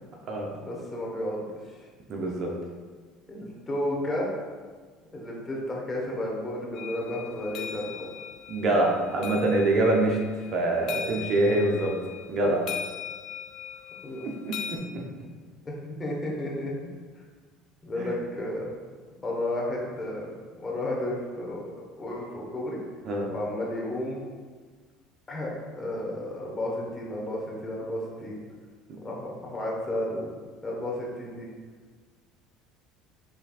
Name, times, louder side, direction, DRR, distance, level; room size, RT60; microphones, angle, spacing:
voice 1, 0.6-1.4 3.3-4.3 5.0-8.1 11.5-11.6 12.4-12.5 14.0-14.2 15.6-16.7 17.8-18.7 19.2-22.8 23.3-24.2 25.3-28.4 29.0-30.3 30.6-31.5, left 1 dB, 25° left, -3 dB, 1.4 m, -32 dB
voice 2, 2.1-2.5 8.5-10.2 10.5-11.9 12.3-12.6 14.2-15.0 18.0-18.2 23.0-23.3, right 2 dB, 50° right, 0 dB, 0.8 m, -25 dB
sound 1, 6.7-14.8, left 9 dB, 60° left, 0.4 m, -40 dB
5.7 x 3.3 x 2.5 m, 1.5 s
hypercardioid pair, 65°, 0 cm